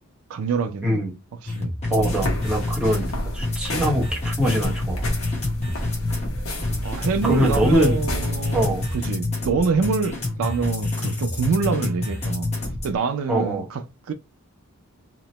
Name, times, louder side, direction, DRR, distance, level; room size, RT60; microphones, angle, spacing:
voice 1, 0.3-1.0 1.4-2.1 5.6-5.8 6.8-14.1, right 5 dB, 75° right, 0.4 m, -26 dB
voice 2, 0.8-1.1 1.9-3.1 3.3-5.0 7.2-8.0 8.5-8.9 13.3-13.7, equal, 5° right, 0.8 m, -23 dB
sound 1, 1.5-13.0, left 2 dB, 30° left, 0.9 m, -28 dB
sound 2, 2.0-8.9, equal, 75° left, 0.9 m, -30 dB
2.9 x 2.0 x 2.9 m
head